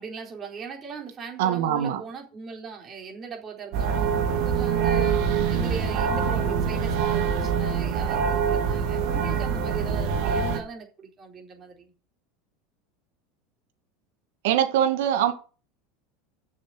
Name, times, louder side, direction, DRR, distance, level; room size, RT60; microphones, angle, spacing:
voice 1, 0.0-11.9, right 5 dB, 30° right, 4.2 m, -39 dB
voice 2, 1.4-2.0 14.4-15.3, right 10 dB, 80° right, 2.1 m, -22 dB
sound 1, 3.7-10.6, right 6 dB, 60° right, 2.7 m, -24 dB
7.3 x 6.7 x 8.1 m
supercardioid pair, 135°, 0 cm